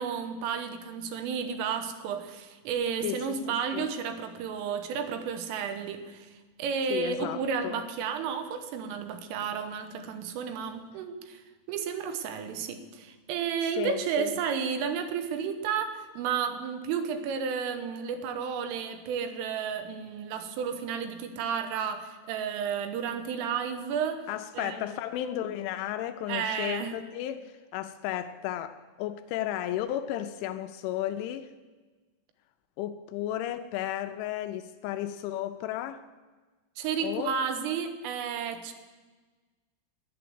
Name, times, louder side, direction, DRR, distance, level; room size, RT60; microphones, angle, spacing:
voice 1, 0.0-6.3 6.6-11.4 11.7-24.2 24.5-24.8 26.3-26.9 36.8-38.7, right 7 dB, 85° right, 8 dB, 3.5 m, -32 dB
voice 2, 3.0-3.4 3.7-3.9 6.9-7.8 13.7-14.3 24.3-28.7 29.0-31.5 32.8-36.0 37.0-37.3, left 12 dB, 85° left, 9 dB, 2.9 m, -33 dB
11.0 x 10.0 x 7.8 m, 1.3 s
omnidirectional pair, 5.7 m